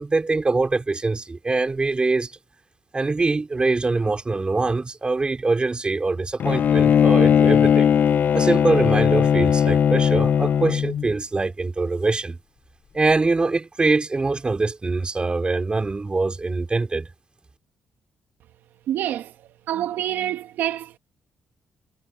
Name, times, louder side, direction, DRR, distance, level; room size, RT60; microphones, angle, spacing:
voice 1, 0.0-2.3 2.9-7.9 8.3-12.4 12.9-17.1, right 3 dB, 30° right, 3.0 m, -23 dB
Bowed string instrument, 6.4-11.1, left 8 dB, 60° left, 0.5 m, -18 dB
voice 2, 18.9-19.3 19.7-21.0, right 12 dB, 75° right, 1.3 m, -26 dB
supercardioid pair, 55°, 3 cm